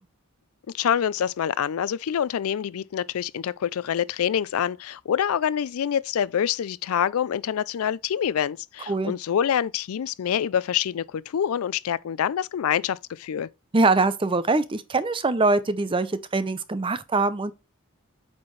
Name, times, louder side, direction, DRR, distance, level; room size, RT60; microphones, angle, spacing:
voice 1, 0.7-13.5, left 9 dB, 80° left, 0.4 m, -26 dB
voice 2, 13.7-17.5, right 3 dB, 25° right, 0.5 m, -23 dB
8.5 x 4.3 x 3.1 m
head